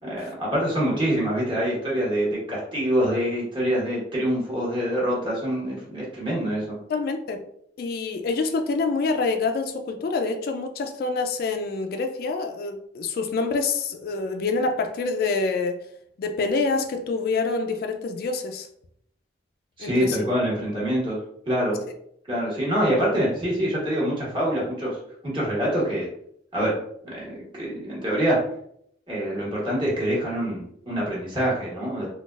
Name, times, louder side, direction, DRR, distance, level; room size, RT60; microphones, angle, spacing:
voice 1, 0.0-6.8 19.8-21.2 21.5-21.8 22.3-25.0 25.2-26.1 26.5-26.8 27.0-28.4 29.1-32.1, equal, 30° right, -6 dB, 1.3 m, -25 dB
voice 2, 6.9-7.4 7.8-15.8 16.2-18.7 19.8-20.3, left 4 dB, 55° left, 5 dB, 0.3 m, -26 dB
3.8 x 2.3 x 2.4 m, 0.69 s
head